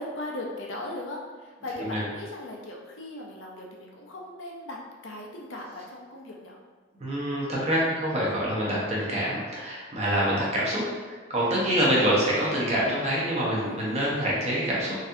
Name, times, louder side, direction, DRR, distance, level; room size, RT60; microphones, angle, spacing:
voice 1, 0.0-4.8 5.0-6.6 11.6-12.0 13.6-14.2, left 1 dB, 70° left, -1 dB, 0.5 m, -38 dB
voice 2, 7.0-15.0, equal, 30° right, -6 dB, 0.9 m, -26 dB
4.0 x 2.7 x 2.6 m, 1.4 s
head